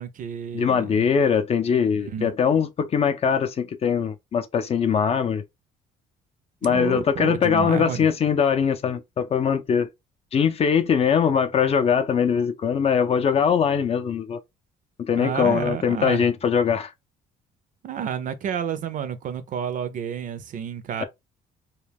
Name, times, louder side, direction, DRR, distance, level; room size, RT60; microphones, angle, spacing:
voice 1, 0.0-1.0 1.9-2.3 6.7-8.1 15.2-16.3 17.8-21.0, right 8 dB, 50° right, 0.5 m, -30 dB
voice 2, 0.5-5.4 6.6-9.9 10.3-14.4 15.0-16.9, left 7 dB, 35° left, 0.5 m, -22 dB
2.3 x 2.2 x 3.4 m
cardioid pair, 110°, 17 cm